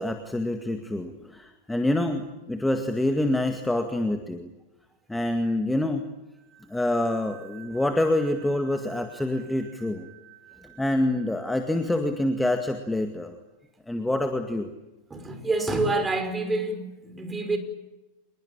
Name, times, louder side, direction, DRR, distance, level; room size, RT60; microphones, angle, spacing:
voice 1, 0.0-4.5 5.1-6.0 6.7-10.1 10.6-13.3 13.9-14.7, left 1 dB, 5° left, 2.0 m, -26 dB
sound 1, 6.3-12.8, right 14 dB, 35° right, 8.0 m, -52 dB
voice 2, 15.1-17.6, right 2 dB, 15° right, 5.4 m, -27 dB
26.5 x 22.0 x 8.8 m
figure-of-eight pair, 90°, 0 cm